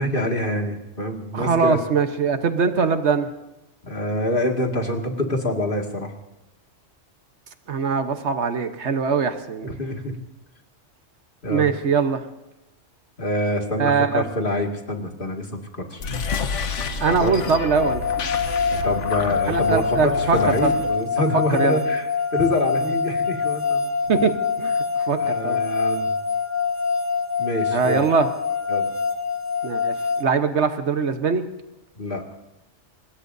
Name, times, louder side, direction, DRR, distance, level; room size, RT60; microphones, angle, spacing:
voice 1, 0.0-1.8 3.9-6.1 9.6-10.2 11.4-11.7 13.2-16.0 17.1-17.3 18.8-22.1 22.3-23.9 25.1-26.1 27.4-28.0 28.7-28.9 32.0-32.2, left 1 dB, 45° left, 2 dB, 2.3 m, -26 dB
voice 2, 1.3-3.3 7.7-9.7 11.5-12.2 13.8-14.3 17.0-18.0 19.5-20.7 21.3-21.8 24.1-25.6 27.7-28.3 29.6-31.5, right 5 dB, 70° right, 8 dB, 1.4 m, -22 dB
sound 1, 15.9-21.0, left 4 dB, 90° left, 1.4 m, -29 dB
sound 2, 17.7-30.2, left 5 dB, 15° left, 0.9 m, -25 dB
25.0 x 20.0 x 2.7 m, 0.97 s
omnidirectional pair, 1.2 m